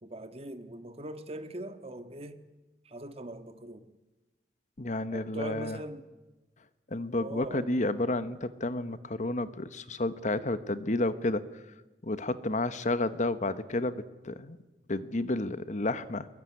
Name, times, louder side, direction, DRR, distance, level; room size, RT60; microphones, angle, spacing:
voice 1, 0.0-2.4 2.8-3.9 5.1-6.1 7.2-7.7, right 1 dB, 35° right, 1.7 m, -41 dB
voice 2, 4.8-5.8 6.9-11.4 12.0-14.6 14.9-16.3, left 2 dB, 45° left, 1.1 m, -31 dB
22.5 x 21.5 x 9.8 m
head